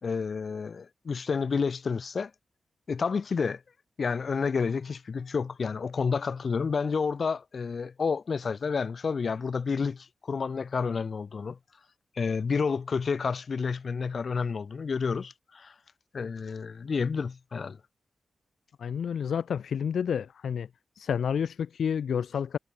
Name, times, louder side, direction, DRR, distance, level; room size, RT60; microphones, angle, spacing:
voice 1, 0.0-2.3 2.9-3.6 4.0-11.6 12.2-15.7 16.1-17.8, left 5 dB, 55° left, 2.9 m, -30 dB
voice 2, 18.8-20.7 21.0-22.6, left 7 dB, 90° left, 2.9 m, -29 dB
wide cardioid pair, 105°, 0 cm